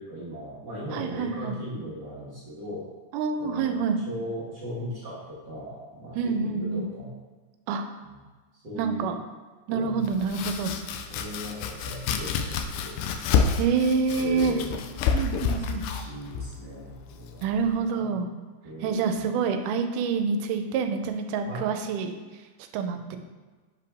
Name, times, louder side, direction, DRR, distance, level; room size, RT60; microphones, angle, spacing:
voice 1, 0.0-2.9 3.4-3.8 4.1-7.1 8.0-8.2 8.6-9.1 9.7-10.0 11.1-13.0 14.2-14.8 15.4-17.4 17.9-18.1 18.6-19.3 21.4-21.7 23.1-23.2, equal, 40° right, -8 dB, 1.8 m, -38 dB
voice 2, 0.9-1.6 3.1-4.0 6.2-6.9 7.7-7.9 8.8-9.2 9.7-10.7 13.6-14.6 15.1-15.8 17.4-18.3 18.8-22.1 22.7-23.2, right 5 dB, 90° right, 7 dB, 2.1 m, -27 dB
Domestic sounds home sounds, 10.0-17.8, left 6 dB, 85° left, 2.1 m, -29 dB
7.2 x 4.9 x 3.5 m, 1.4 s
omnidirectional pair, 3.6 m